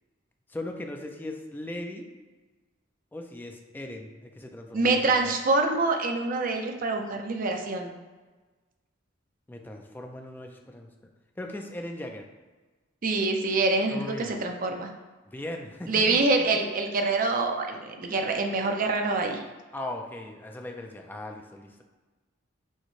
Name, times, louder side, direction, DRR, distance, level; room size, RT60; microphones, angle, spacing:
voice 1, 0.5-2.1 3.1-5.3 9.5-10.9 11.4-12.3 13.9-14.3 15.2-16.2 19.7-21.8, left 1 dB, 10° left, 3 dB, 0.4 m, -38 dB
voice 2, 4.7-7.9 13.0-14.9 15.9-19.4, right 3 dB, 45° right, 3 dB, 0.5 m, -25 dB
6.3 x 2.1 x 3.1 m, 1.3 s
head